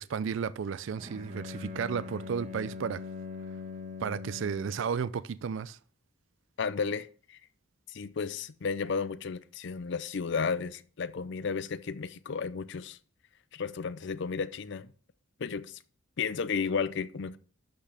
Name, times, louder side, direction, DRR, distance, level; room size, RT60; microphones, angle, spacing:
voice 1, 0.1-3.0 4.0-5.8, right 6 dB, 60° right, 0.4 m, -33 dB
Bowed string instrument, 0.9-5.0, left 4 dB, 35° right, 1.2 m, -42 dB
voice 2, 6.6-7.4 7.9-13.0 13.5-14.9 15.4-15.8 16.2-17.4, left 5 dB, 55° left, 0.5 m, -33 dB
12.0 x 6.0 x 3.4 m
head